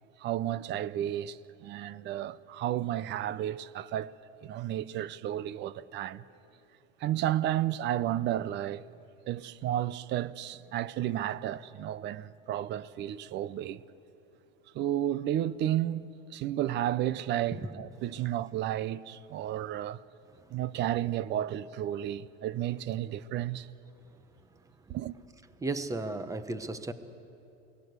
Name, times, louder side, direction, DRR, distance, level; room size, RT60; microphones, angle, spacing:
voice 1, 0.2-4.1 4.4-6.2 7.0-8.9 9.3-13.8 14.7-16.1 16.3-20.0 20.5-23.7 24.9-25.2, right 12 dB, 35° right, 0.6 m, -32 dB
voice 2, 25.6-26.9, right 2 dB, 10° right, 1.0 m, -34 dB
29.0 x 19.0 x 8.1 m
supercardioid pair, 140°, 32 cm